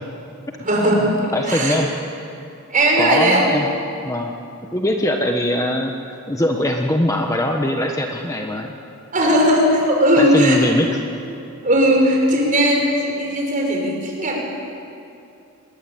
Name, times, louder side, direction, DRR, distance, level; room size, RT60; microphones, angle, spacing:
voice 1, 0.6-1.8 2.7-3.5 9.1-10.6 11.6-14.4, equal, 35° right, 0 dB, 5.7 m, -17 dB
voice 2, 1.3-1.9 3.0-3.7 4.0-4.3 4.7-8.8 10.2-10.9, left 1 dB, 15° left, 2 dB, 1.3 m, -21 dB
26.5 x 21.0 x 8.8 m, 2.6 s
head